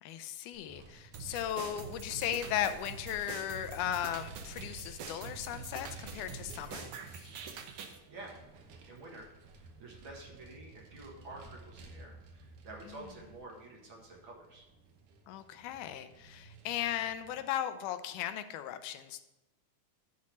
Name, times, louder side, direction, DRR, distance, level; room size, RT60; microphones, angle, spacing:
voice 1, 0.0-7.3 12.9-13.0 15.3-19.2, left 11 dB, 85° left, 10 dB, 2.1 m, -37 dB
Vehicle, 0.5-17.4, right 3 dB, 90° right, 2.6 m, -54 dB
sound 1, 1.1-8.0, right 6 dB, 70° right, 1.4 m, -45 dB
voice 2, 8.9-9.3 9.6-14.7, right 2 dB, 50° right, -1 dB, 1.9 m, -49 dB
10.5 x 4.2 x 6.1 m, 0.96 s
omnidirectional pair, 3.5 m